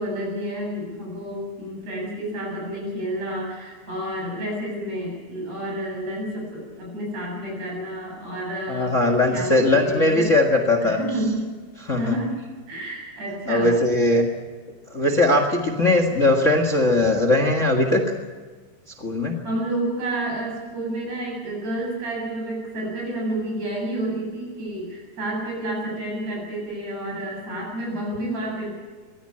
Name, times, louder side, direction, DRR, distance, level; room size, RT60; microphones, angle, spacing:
voice 1, 0.0-10.3 10.8-11.5 11.9-12.4 12.7-14.0 19.4-28.8, right 1 dB, 60° right, -1 dB, 9.0 m, -30 dB
voice 2, 8.7-11.0 11.8-12.1 13.5-14.3 14.9-18.0 19.0-19.4, left 2 dB, 30° left, 6 dB, 1.7 m, -19 dB
23.5 x 16.0 x 8.7 m, 1.4 s
omnidirectional pair, 3.4 m